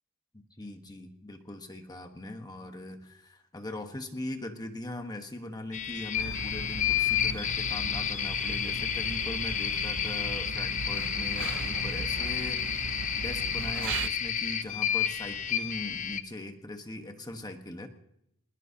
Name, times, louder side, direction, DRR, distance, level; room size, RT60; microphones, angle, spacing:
voice 1, 0.3-17.9, left 1 dB, 20° left, 5 dB, 1.2 m, -40 dB
sound 1, 5.7-16.2, left 9 dB, 35° left, 0.8 m, -31 dB
sound 2, 6.1-14.1, right 5 dB, 60° right, 0.6 m, -38 dB
21.0 x 21.0 x 2.8 m, 0.77 s
head